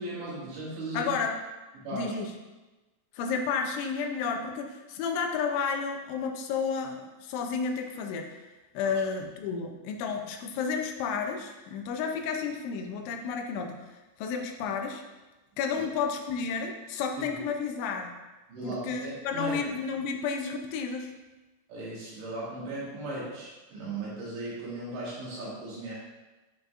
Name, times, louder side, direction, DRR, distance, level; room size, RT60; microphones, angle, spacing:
voice 1, 0.0-1.1 1.9-2.2 8.8-8.9 15.7-15.8 17.2-17.3 18.5-19.6 21.7-25.9, right 2 dB, 70° right, -8 dB, 4.1 m, -37 dB
voice 2, 0.9-1.4 1.9-2.3 3.1-8.4 8.7-13.9 14.2-15.0 15.6-18.1 18.6-21.1, left 5 dB, 80° left, 3 dB, 2.9 m, -31 dB
11.5 x 5.0 x 2.5 m, 1.1 s
omnidirectional pair, 5.5 m